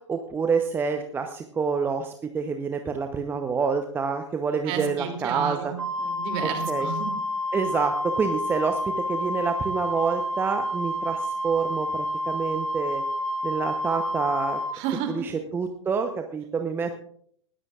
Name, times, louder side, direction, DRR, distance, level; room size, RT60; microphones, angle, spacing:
voice 1, 0.1-5.7 6.7-6.9 7.5-13.0 13.4-14.6 15.1-17.0, right 5 dB, 15° right, 6 dB, 0.8 m, -27 dB
voice 2, 4.7-7.1 14.7-15.3, right 8 dB, 40° right, 5 dB, 2.8 m, -31 dB
Wind instrument woodwind instrument, 5.8-14.8, equal, 80° right, 1.6 m, -29 dB
19.5 x 13.5 x 2.4 m, 0.62 s
figure-of-eight pair, 105°, 15 cm